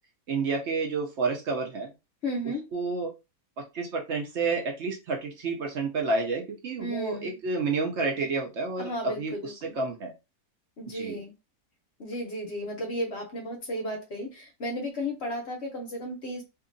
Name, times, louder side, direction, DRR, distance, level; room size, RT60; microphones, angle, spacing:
voice 1, 0.3-1.9 2.7-3.1 3.7-10.1 10.8-11.2, right 4 dB, 65° right, 0.7 m, -30 dB
voice 2, 2.2-2.6 6.8-7.3 8.8-9.7 10.8-11.3 12.0-16.4, equal, 55° left, 0.8 m, -34 dB
2.7 x 2.6 x 2.5 m
omnidirectional pair, 1.8 m